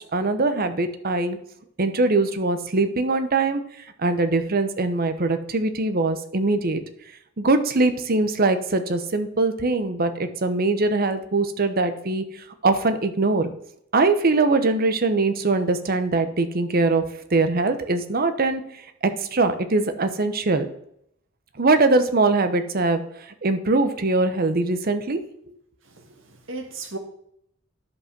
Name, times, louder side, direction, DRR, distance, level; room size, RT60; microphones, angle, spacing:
voice 1, 0.1-1.4 1.8-3.6 4.0-6.8 7.4-12.2 12.6-13.5 13.9-17.0 17.3-18.6 19.0-20.7 21.6-23.0 23.4-25.2, right 3 dB, 50° right, 10 dB, 0.9 m, -22 dB
voice 2, 25.8-27.0, right 3 dB, 70° right, 3 dB, 1.7 m, -36 dB
11.0 x 5.5 x 6.0 m, 0.73 s
head